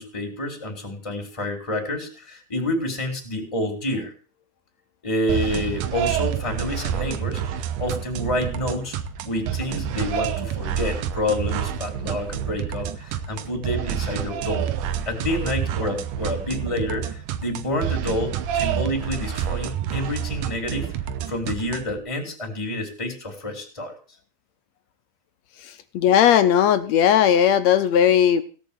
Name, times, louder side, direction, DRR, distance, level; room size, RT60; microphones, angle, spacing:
voice 1, 0.0-4.1 5.0-9.0 9.2-14.7 15.1-20.9 21.3-24.0, left 1 dB, 10° left, 2 dB, 3.4 m, -28 dB
sound 1, 5.3-22.0, right 9 dB, 75° right, 2.4 m, -28 dB
voice 2, 25.9-28.4, left 9 dB, 70° left, 12 dB, 1.7 m, -17 dB
17.0 x 6.5 x 8.4 m, 0.40 s
omnidirectional pair, 3.8 m